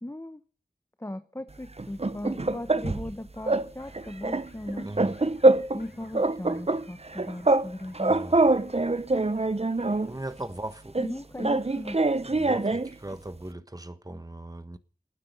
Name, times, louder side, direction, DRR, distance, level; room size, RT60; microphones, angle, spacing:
voice 1, 0.0-0.4 1.0-4.9 5.7-8.2 11.0-12.0, left 1 dB, 15° left, 1.0 m, -38 dB
sound 1, 1.8-3.1 3.5-3.7 3.9-5.8 6.1-7.7 7.9-10.1 10.9-12.9, right 2 dB, 40° right, 0.8 m, -24 dB
sound 2, 3.3-10.5, left 2 dB, 85° left, 5.5 m, -57 dB
voice 2, 4.8-5.2 8.1-8.4 10.0-11.0 12.2-14.8, right 1 dB, 25° right, 1.3 m, -38 dB
19.0 x 9.8 x 6.7 m
wide cardioid pair, 45°, 16 cm